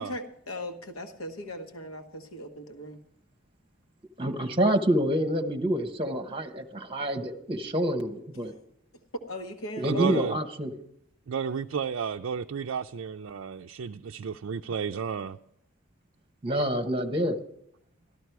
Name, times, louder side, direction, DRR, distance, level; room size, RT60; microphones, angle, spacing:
voice 1, 0.0-3.0 8.3-8.6 9.3-10.2, left 1 dB, 85° left, 1.2 m, -39 dB
voice 2, 4.2-8.5 9.8-10.7 16.4-17.4, equal, 25° right, 1.1 m, -27 dB
voice 3, 9.8-10.4 11.3-15.4, right 6 dB, 65° right, 0.4 m, -32 dB
13.5 x 13.0 x 4.7 m
head